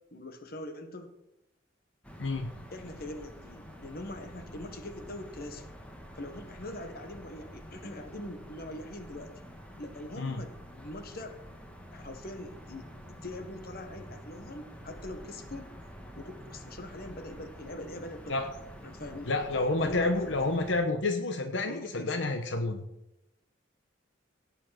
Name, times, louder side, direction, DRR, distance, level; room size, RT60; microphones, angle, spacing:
voice 1, 0.1-1.1 2.7-5.6 6.2-9.3 9.8-11.4 11.9-12.9 13.2-15.7 16.1-18.4 18.8-19.3 19.8-20.3 21.7-22.3, left 1 dB, 55° left, 7 dB, 1.5 m, -43 dB
sound 1, 2.0-20.8, equal, 5° left, 1.5 m, -48 dB
voice 2, 2.2-2.5 10.2-10.4 18.3-18.5 19.3-22.8, left 2 dB, 80° left, 5 dB, 1.1 m, -29 dB
17.0 x 5.8 x 5.9 m, 0.86 s
head